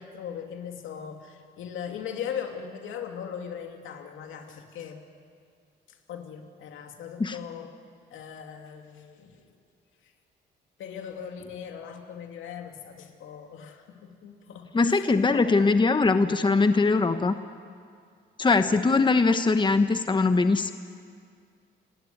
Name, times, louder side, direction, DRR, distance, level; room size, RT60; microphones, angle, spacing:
voice 1, 0.0-5.0 6.1-7.7 8.1-9.5 10.8-15.1 15.3-15.7, left 8 dB, 85° left, 4 dB, 2.6 m, -39 dB
voice 2, 14.7-17.3 18.4-20.7, left 3 dB, 25° left, 9 dB, 1.2 m, -21 dB
29.0 x 18.0 x 9.6 m, 2.2 s
cardioid pair, 90°, 20 cm